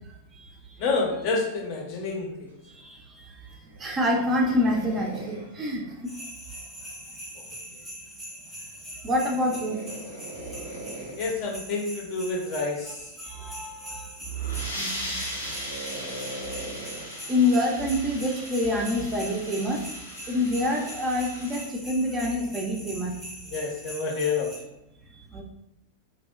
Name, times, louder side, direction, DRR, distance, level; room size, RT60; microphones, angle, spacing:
voice 1, 0.8-2.5 11.2-12.9 23.5-24.5, left 4 dB, 45° left, 0 dB, 0.5 m, -28 dB
sound 1, 3.7-7.0 9.3-11.3 12.5-12.9 13.5-13.6 14.3-14.8 15.3-18.7 19.5-19.9, right 1 dB, 85° right, 0.5 m, -41 dB
voice 2, 3.8-5.8 9.0-10.0 13.2-14.1 14.8-15.1 17.3-19.8 20.3-23.2 25.3-25.4, left 1 dB, 25° right, 0 dB, 0.4 m, -26 dB
sound 2, 6.1-24.6, equal, ahead, 0.7 m, -42 dB
sound 3, 14.2-21.7, left 1 dB, 85° left, 0.6 m, -38 dB
2.6 x 2.1 x 2.3 m, 0.88 s
figure-of-eight pair, 90°, 0 cm